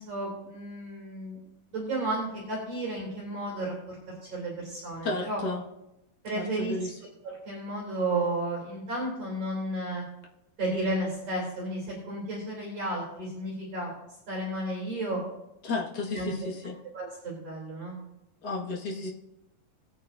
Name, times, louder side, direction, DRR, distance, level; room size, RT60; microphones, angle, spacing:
voice 1, 0.0-1.4 1.7-5.4 6.2-6.8 7.2-10.0 10.6-13.9 14.3-15.2 16.1-18.0, right 1 dB, 45° right, -3 dB, 3.8 m, -33 dB
voice 2, 5.0-5.6 6.3-6.9 15.6-16.7 18.4-19.1, left 3 dB, 40° left, -2 dB, 1.6 m, -32 dB
20.0 x 9.1 x 2.6 m, 0.89 s
omnidirectional pair, 4.0 m